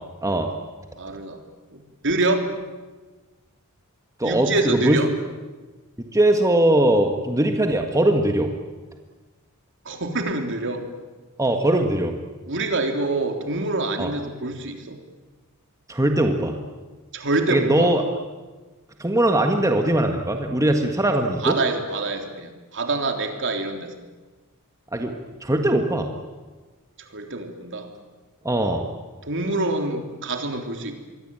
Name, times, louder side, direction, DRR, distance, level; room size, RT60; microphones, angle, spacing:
voice 1, 0.2-0.5 4.2-5.0 6.0-8.5 11.4-12.1 14.0-14.1 15.9-16.6 17.5-18.0 19.0-21.6 24.9-25.1 25.4-26.1 28.4-28.8, right 1 dB, 15° right, 4 dB, 1.7 m, -20 dB
voice 2, 1.0-1.4 1.7-2.5 4.2-5.1 9.8-10.9 12.5-15.0 17.1-17.9 21.4-24.0 27.0-27.9 29.3-31.0, right 2 dB, 55° right, 5 dB, 3.5 m, -26 dB
26.5 x 23.0 x 9.1 m, 1.3 s
head